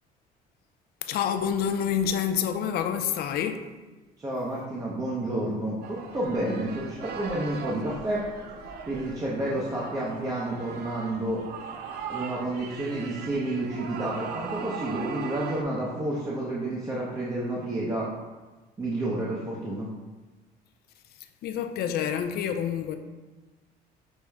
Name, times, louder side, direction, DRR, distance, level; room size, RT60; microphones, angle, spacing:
voice 1, 1.1-3.6 21.4-23.0, left 8 dB, 65° left, 0.4 m, -27 dB
voice 2, 4.2-8.3 8.9-11.4 12.1-18.1 18.8-19.9, right 1 dB, 20° right, 0.7 m, -30 dB
sound 1, 5.8-15.6, right 6 dB, 70° right, 0.5 m, -39 dB
6.3 x 2.1 x 3.4 m
cardioid pair, 110°, 17 cm